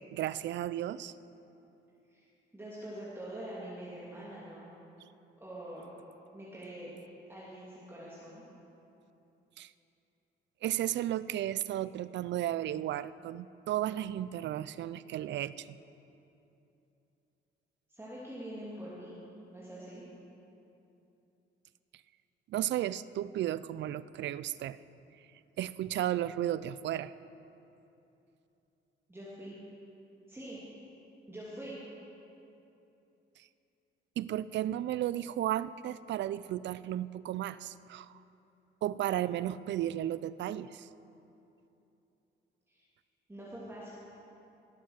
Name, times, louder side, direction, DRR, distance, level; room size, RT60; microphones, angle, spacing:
voice 1, 0.1-1.1 9.6-9.7 10.6-15.8 22.5-24.8 25.6-27.1 34.2-38.1 38.8-40.9, right 12 dB, 65° right, 17 dB, 0.4 m, -34 dB
voice 2, 2.5-4.7 5.4-5.8 6.3-6.9 7.3-8.4 17.9-19.2 19.5-20.0 29.1-29.6 30.3-30.6 31.3-31.8 42.7-42.8 43.3-43.9, right 1 dB, 10° right, -8 dB, 2.5 m, -44 dB
17.0 x 7.5 x 6.5 m, 2.9 s
cardioid pair, 90°, 20 cm